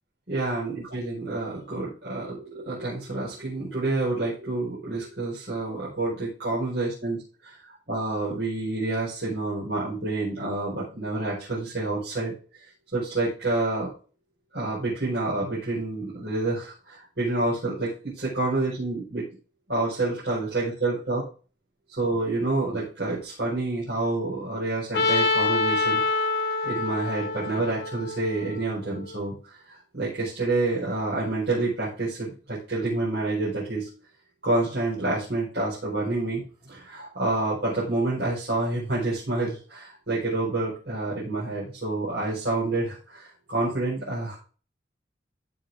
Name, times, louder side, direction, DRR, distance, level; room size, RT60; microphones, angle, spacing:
voice 1, 0.3-12.3 12.9-13.9 14.5-19.2 19.7-21.3 22.0-26.0 26.6-33.9 34.4-44.4, right 2 dB, 70° right, -8 dB, 5.0 m, -28 dB
Trumpet, 24.9-29.0, left 3 dB, 75° left, 2.0 m, -26 dB
14.0 x 5.2 x 3.6 m, 0.37 s
head